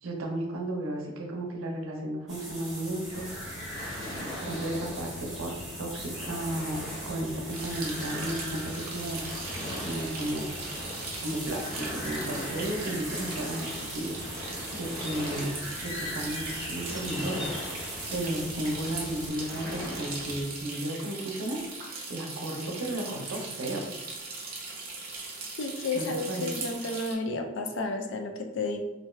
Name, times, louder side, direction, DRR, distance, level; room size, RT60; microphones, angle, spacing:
voice 1, 0.0-3.3 4.2-9.2 9.8-10.5 11.2-13.7 13.9-15.5 15.8-17.5 18.1-21.6 22.1-23.8 25.9-26.7, right 1 dB, 90° right, 1 dB, 0.6 m, -34 dB
sound 1, 2.3-19.3, equal, 5° right, 1.1 m, -40 dB
Waves surf, 3.1-20.4, left 1 dB, 20° left, 0.8 m, -41 dB
sound 2, 7.5-27.1, right 3 dB, 45° right, 0.6 m, -40 dB
voice 2, 25.6-28.8, left 2 dB, 60° left, 4 dB, 0.4 m, -32 dB
2.6 x 2.3 x 3.1 m, 1.0 s
head